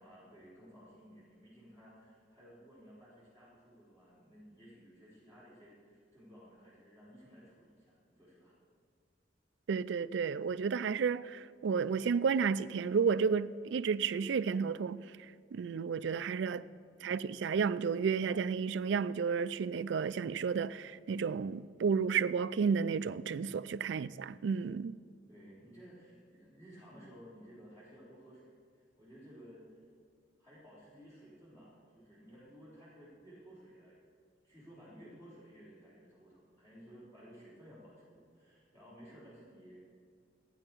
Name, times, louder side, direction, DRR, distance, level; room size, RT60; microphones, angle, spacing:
voice 1, 0.0-8.5 16.8-17.3 23.9-24.3 25.3-29.8 30.4-34.0 34.4-39.8, equal, 20° left, 3.8 m, -56 dB
voice 2, 9.7-15.0 15.5-16.7 17.0-25.0, right 6 dB, 75° right, 0.3 m, -32 dB
14.0 x 9.7 x 4.5 m
head